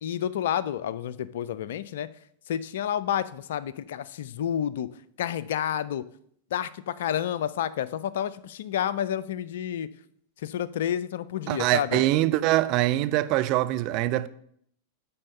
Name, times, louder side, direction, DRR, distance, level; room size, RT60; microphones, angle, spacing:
voice 1, 0.0-2.1 2.5-4.9 5.2-6.0 6.5-9.9 10.4-12.0, left 10 dB, 60° left, 0.4 m, -30 dB
voice 2, 11.5-14.3, right 16 dB, 40° right, 0.4 m, -23 dB
8.8 x 4.3 x 5.4 m
figure-of-eight pair, 90°, 0 cm